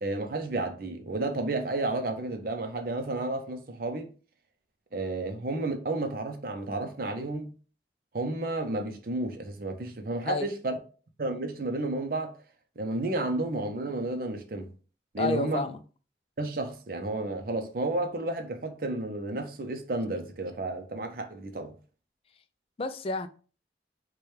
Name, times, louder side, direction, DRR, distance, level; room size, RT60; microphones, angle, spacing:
voice 1, 0.0-4.1 4.9-7.5 8.1-10.7 11.2-12.4 12.8-14.7 15.1-15.6 16.4-21.7, right 2 dB, 55° right, 0.6 m, -32 dB
voice 2, 15.2-15.8 22.8-23.3, left 3 dB, 35° left, 0.3 m, -30 dB
4.7 x 2.3 x 3.1 m
head